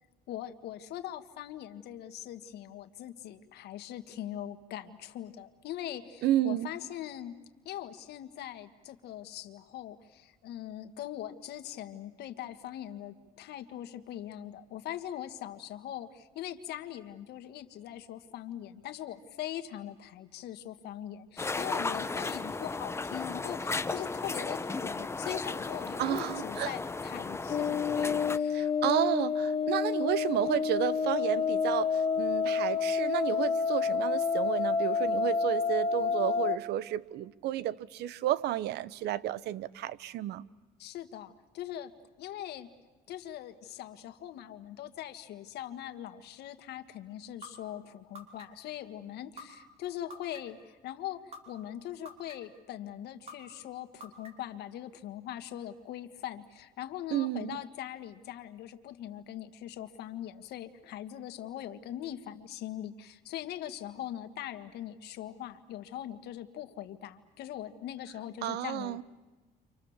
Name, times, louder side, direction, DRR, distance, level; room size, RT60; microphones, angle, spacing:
voice 1, 0.3-7.3 7.6-28.7 40.8-41.9 42.2-42.7 43.1-69.0, left 11 dB, 75° left, 1.7 m, -41 dB
voice 2, 6.2-6.7 26.0-26.7 28.5-40.4 57.1-57.6 68.4-69.0, right 13 dB, 75° right, 0.9 m, -31 dB
sound 1, 21.4-28.4, left 3 dB, 15° left, 0.8 m, -35 dB
sound 2, 27.5-36.6, left 5 dB, 35° left, 1.8 m, -29 dB
sound 3, 47.4-47.5 48.1-48.7 49.4-49.5 50.1-50.6 51.3-51.4 52.1-52.6 53.3-53.4 54.0-54.5, left 1 dB, 40° right, 4.9 m, -45 dB
30.0 x 26.0 x 7.3 m
cardioid pair, 110°, 17 cm